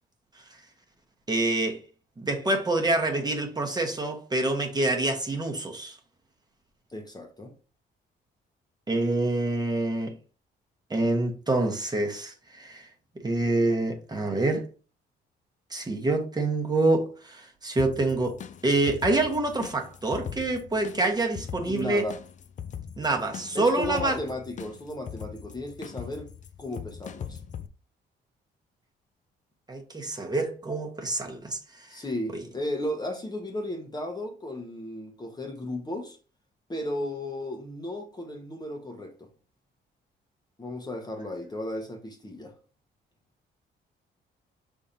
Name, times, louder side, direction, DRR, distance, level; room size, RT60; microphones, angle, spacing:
voice 1, 1.3-1.8 2.2-6.0 8.9-10.2 10.9-12.9 13.2-14.7 15.7-22.1 23.0-24.2 29.7-32.0 32.3-32.4, right 2 dB, 20° right, 1.0 m, -26 dB
voice 2, 6.9-7.5 21.6-22.1 23.5-26.3 26.6-27.4 31.9-36.2 36.7-39.3 40.6-42.5, left 1 dB, 20° left, 0.9 m, -35 dB
sound 1, 17.8-27.7, left 8 dB, 40° left, 0.4 m, -41 dB
5.4 x 3.5 x 2.6 m
cardioid pair, 90°, 20 cm